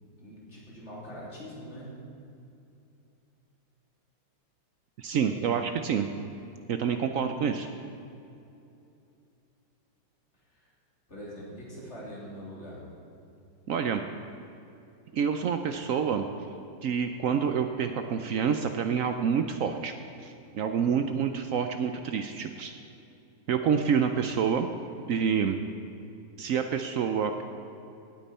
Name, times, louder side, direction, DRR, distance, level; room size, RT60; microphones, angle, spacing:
voice 1, 0.2-1.9 5.2-5.7 10.5-10.7 11.1-12.9, equal, 35° left, -6 dB, 3.4 m, -43 dB
voice 2, 5.0-6.1 6.7-7.7 13.7-14.0 15.1-16.2 16.8-19.9 20.2-22.8 23.5-24.7 25.1-25.6 26.4-27.4, right 7 dB, 75° right, 7 dB, 0.7 m, -27 dB
17.5 x 8.8 x 4.3 m, 2.7 s
omnidirectional pair, 2.0 m